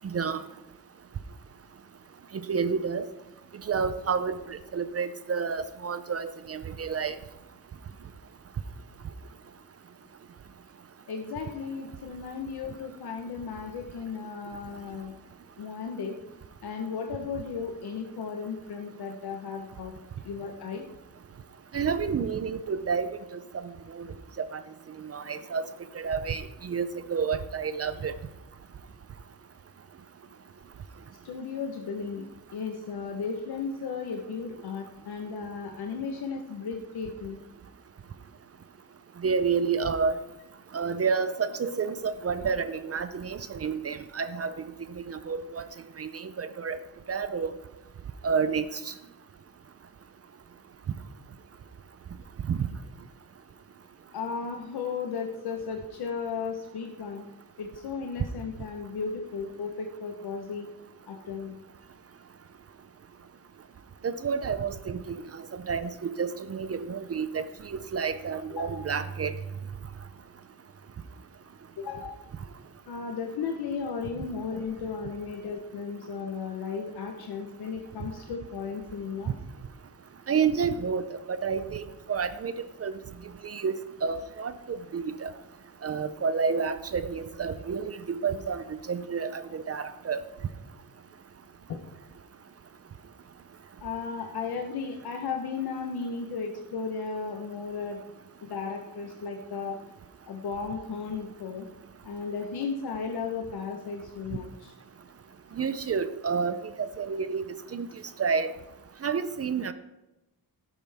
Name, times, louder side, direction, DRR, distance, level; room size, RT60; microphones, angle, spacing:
voice 1, 0.0-0.4 2.5-3.1 3.6-7.2 21.7-23.6 23.9-24.1 24.4-24.6 25.0-25.7 25.9-28.1 39.2-40.2 40.7-44.5 45.1-45.6 46.0-46.8 47.1-47.5 48.2-48.9 52.5-52.6 64.0-65.2 65.5-69.3 80.3-82.9 83.4-85.3 85.8-90.2 105.6-107.4 107.7-107.9 108.2-108.5 109.0-109.7, right 5 dB, 40° right, 12 dB, 0.6 m, -30 dB
voice 2, 11.1-15.1 15.6-16.2 16.6-19.9 20.2-20.8 31.2-32.3 32.5-37.4 54.1-57.2 57.6-60.7 61.1-61.6 68.5-68.7 71.8-72.2 72.9-79.3 91.7-91.8 93.8-98.0 98.4-99.8 100.3-101.7 102.0-104.7, left 5 dB, 85° left, 3 dB, 1.1 m, -35 dB
13.0 x 11.5 x 3.5 m, 1.0 s
wide cardioid pair, 155°, 38 cm